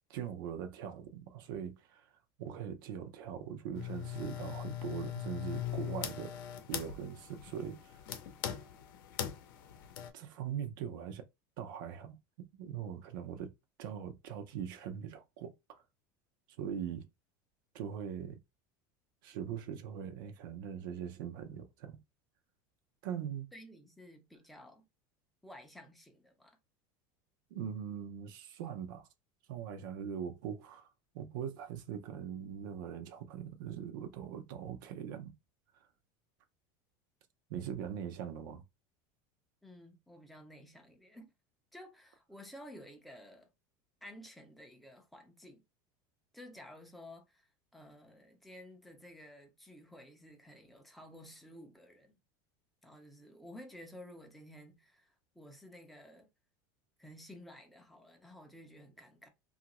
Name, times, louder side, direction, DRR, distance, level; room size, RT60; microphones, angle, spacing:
voice 1, 0.1-2.1 2.4-6.4 6.7-8.0 10.1-11.2 11.6-12.2 12.6-13.5 13.8-15.8 16.6-17.1 17.7-18.4 19.2-22.0 23.0-23.5 27.5-29.1 29.5-30.9 31.1-35.3 37.5-38.6, right 8 dB, 70° right, 0.5 m, -41 dB
sound 1, 3.7-10.1, left 11 dB, 80° left, 0.6 m, -41 dB
voice 2, 23.5-24.9 25.4-26.6 39.6-41.3 41.7-43.5 44.0-45.6 46.3-52.1 52.8-56.3 57.0-59.3, left 1 dB, ahead, 0.4 m, -53 dB
2.9 x 2.4 x 2.9 m
cardioid pair, 175°, 11 cm